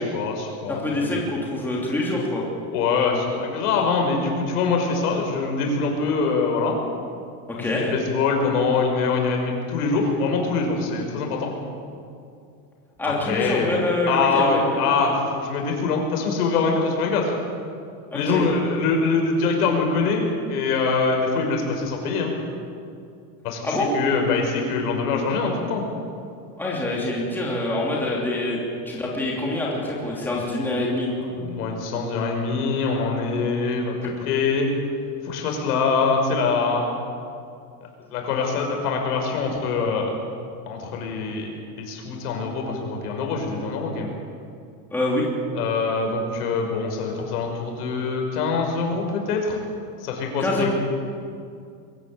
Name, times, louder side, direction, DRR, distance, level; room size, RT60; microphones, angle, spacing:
voice 1, 0.0-1.2 2.7-6.8 7.6-11.5 13.2-13.8 14.1-17.3 18.1-22.3 23.4-25.8 31.2-34.7 35.2-36.9 38.1-40.1 40.7-44.1 45.5-49.6 50.0-50.7, left 4 dB, 90° left, 2 dB, 5.7 m, -24 dB
voice 2, 0.7-2.4 7.6-7.9 13.0-15.1 18.1-18.4 23.6-23.9 26.6-28.6 28.9-31.1 44.9-45.3 50.4-50.7, left 2 dB, 5° left, -4 dB, 3.0 m, -25 dB
22.5 x 15.0 x 8.9 m, 2.4 s
supercardioid pair, 180°, 44 cm